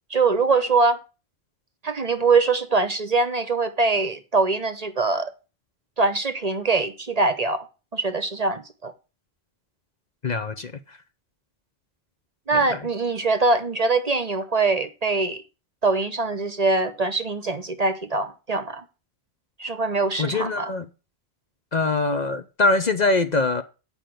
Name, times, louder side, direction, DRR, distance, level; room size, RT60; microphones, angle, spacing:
voice 1, 0.1-1.0 1.8-5.3 6.0-7.7 7.9-8.9 12.5-15.4 15.8-18.9 19.6-20.7, right 3 dB, 40° right, 0.9 m, -23 dB
voice 2, 10.2-11.0 20.2-20.8 21.7-23.6, left 3 dB, 45° left, 0.8 m, -23 dB
8.6 x 5.3 x 7.7 m
omnidirectional pair, 1.1 m